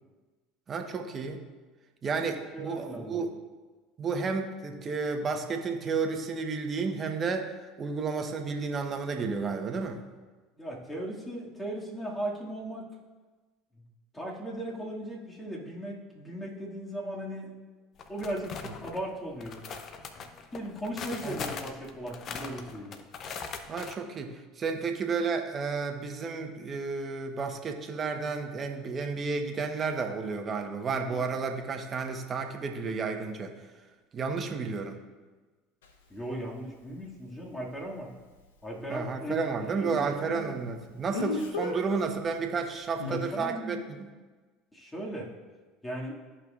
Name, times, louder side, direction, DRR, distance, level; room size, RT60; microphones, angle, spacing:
voice 1, 0.7-1.4 2.0-3.3 4.0-10.0 18.6-18.7 21.2-21.4 23.7-33.5 34.1-35.0 38.9-43.8, right 4 dB, 35° right, 5 dB, 1.2 m, -32 dB
voice 2, 2.1-3.3 10.6-12.9 13.8-13.9 14.1-17.5 18.1-18.5 18.8-19.6 20.5-23.0 30.9-31.2 36.1-38.1 38.6-39.5 39.8-40.5 43.1-43.8 44.7-45.3 45.8-46.2, right 1 dB, 15° left, -4 dB, 2.3 m, -37 dB
sound 1, 18.0-19.0 19.4-24.0, left 6 dB, 45° left, 0.8 m, -40 dB
Speech, 35.8-35.9 41.1-41.8 43.0-43.3, left 3 dB, 80° left, 0.9 m, -32 dB
13.5 x 5.6 x 2.5 m, 1.3 s
hypercardioid pair, 75°, 0 cm